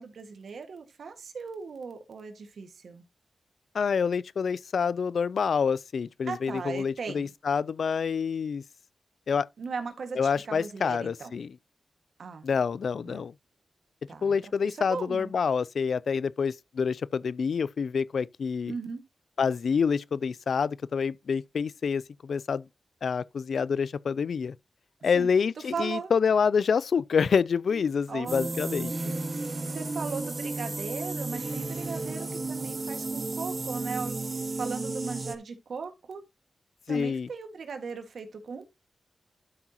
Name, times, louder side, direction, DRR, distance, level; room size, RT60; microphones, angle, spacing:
voice 1, 0.0-3.0 6.3-7.3 9.6-11.3 12.2-12.5 13.0-13.2 14.1-14.3 14.6-15.3 18.7-19.0 25.1-25.3 25.7-26.1 27.7-28.6 29.6-34.2 34.5-36.2 36.9-38.7, right 5 dB, 85° right, 1.8 m, -38 dB
voice 2, 3.7-8.6 9.3-9.5 10.2-11.6 12.4-13.3 14.2-18.7 19.4-22.6 23.0-24.5 25.0-28.9 36.9-37.3, left 6 dB, 80° left, 0.4 m, -27 dB
sound 1, 28.3-35.4, right 3 dB, 45° right, 1.3 m, -33 dB
12.0 x 6.0 x 2.9 m
cardioid pair, 65°, 0 cm